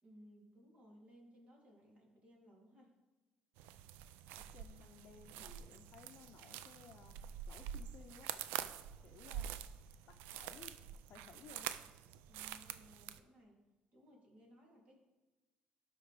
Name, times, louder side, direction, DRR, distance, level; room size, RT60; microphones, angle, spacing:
voice 1, 0.0-2.9 12.3-13.6 13.9-15.0, equal, 45° right, -2 dB, 2.8 m, -62 dB
sound 1, 3.6-13.2, right 10 dB, 85° right, 0.3 m, -47 dB
voice 2, 4.3-8.3 9.0-9.7 10.1-10.8 11.1-11.7, left 7 dB, 60° left, 3 dB, 0.6 m, -59 dB
12.5 x 4.9 x 3.3 m, 1.2 s
supercardioid pair, 80°, 3 cm